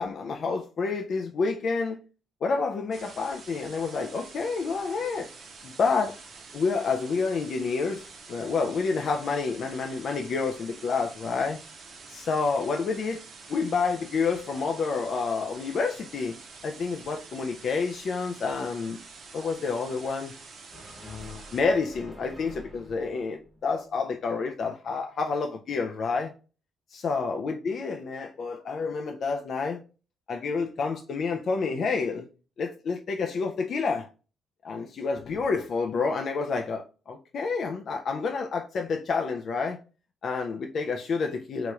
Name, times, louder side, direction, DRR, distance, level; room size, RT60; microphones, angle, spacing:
voice 1, 0.0-2.0 2.4-5.3 5.6-6.2 6.5-11.6 12.1-13.2 13.5-16.4 16.6-19.0 19.3-20.3 21.0-26.3 26.9-29.8 30.3-32.3 32.6-34.1 34.6-39.8 40.2-41.7, left 4 dB, 55° left, 0.3 m, -29 dB
sound 1, 2.9-21.6, right 4 dB, 60° right, 0.7 m, -47 dB
sound 2, 20.7-24.2, equal, 5° right, 0.8 m, -48 dB
3.0 x 2.9 x 2.3 m
cardioid pair, 90°, 0 cm